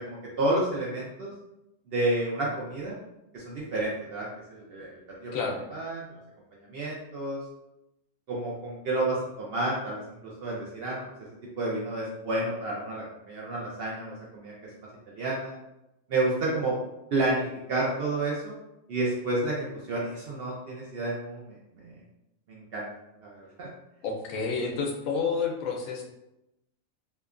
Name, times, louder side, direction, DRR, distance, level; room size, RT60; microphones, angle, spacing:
voice 1, 0.0-1.3 1.9-3.0 3.3-5.3 5.7-6.0 6.7-7.4 8.3-11.0 11.6-14.5 15.1-15.5 16.1-16.8 17.1-18.5 18.9-21.9 22.5-22.8 23.2-23.7, right 2 dB, 65° right, -4 dB, 0.6 m, -30 dB
voice 2, 24.0-26.0, left 5 dB, 80° left, 0 dB, 1.0 m, -29 dB
2.7 x 2.2 x 2.4 m, 0.90 s
omnidirectional pair, 1.4 m